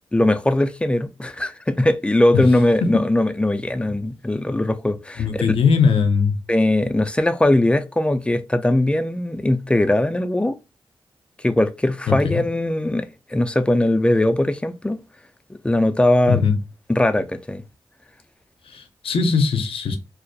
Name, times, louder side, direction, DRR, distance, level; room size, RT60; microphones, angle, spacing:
voice 1, 0.1-5.4 6.5-10.6 11.4-15.0 15.5-16.5 16.9-17.6, left 1 dB, 10° left, 0.3 m, -20 dB
voice 2, 5.2-6.3 12.1-12.4 16.3-16.5 18.7-20.0, left 5 dB, 80° left, 0.5 m, -19 dB
2.3 x 2.1 x 2.6 m
cardioid pair, 50°, 9 cm